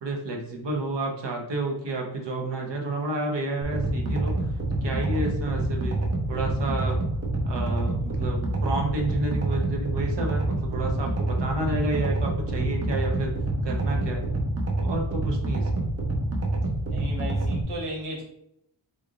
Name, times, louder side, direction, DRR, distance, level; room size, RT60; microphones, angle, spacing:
voice 1, 0.0-4.3 4.8-6.0 6.3-7.0 7.4-13.3 13.6-14.2 14.8-15.9, right 2 dB, 55° right, 1 dB, 0.8 m, -30 dB
sound 1, 3.6-17.6, right 2 dB, 30° right, 0.6 m, -27 dB
voice 2, 16.9-18.2, equal, 80° right, -3 dB, 1.4 m, -35 dB
3.8 x 3.3 x 2.4 m, 0.76 s
wide cardioid pair, 160°, 49 cm